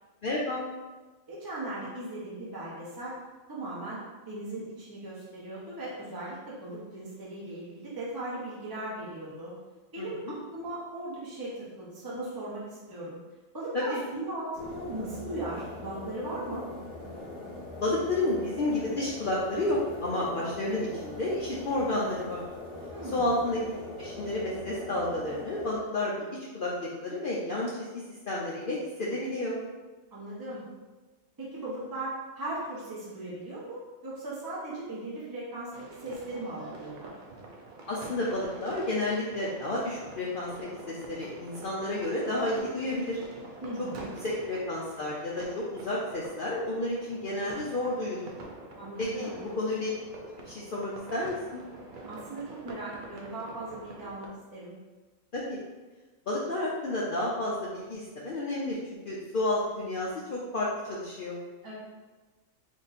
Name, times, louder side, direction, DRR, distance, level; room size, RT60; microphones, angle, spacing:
voice 1, 0.2-0.6 10.0-10.4 13.7-14.0 17.8-22.4 23.1-23.6 24.0-26.2 26.5-27.9 28.3-29.5 37.9-40.5 40.9-43.2 44.2-48.3 49.0-49.3 49.6-49.9 50.4-51.6 55.3-55.6 56.3-58.8 59.0-61.4, left 1 dB, 60° left, -5 dB, 0.6 m, -31 dB
voice 2, 1.3-3.1 3.5-4.0 4.3-9.5 9.9-13.2 13.5-16.6 22.9-23.2 30.1-30.6 31.4-37.1 43.6-44.1 48.8-49.4 52.1-54.7 61.6-61.7, right 2 dB, 20° right, -8 dB, 0.8 m, -38 dB
sound 1, 14.5-25.8, left 1 dB, 80° left, 1.6 m, -42 dB
sound 2, 35.7-54.3, right 2 dB, 55° right, 0.5 m, -46 dB
3.6 x 2.6 x 4.0 m, 1.3 s
omnidirectional pair, 1.4 m